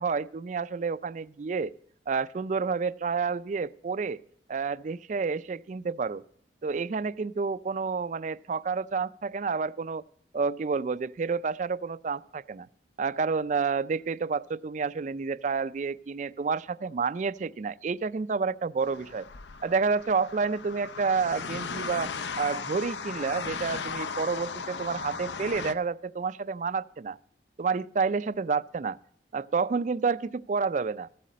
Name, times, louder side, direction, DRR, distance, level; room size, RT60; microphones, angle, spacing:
voice 1, 0.0-1.7 2.1-4.2 4.5-6.2 6.6-10.0 10.3-12.7 13.0-19.3 19.6-22.1 22.4-27.2 27.6-29.0 29.3-31.1, right 5 dB, 40° right, 0.3 m, -29 dB
sound 1, 18.8-25.7, left 5 dB, 70° left, 0.6 m, -37 dB
14.5 x 8.4 x 5.0 m
head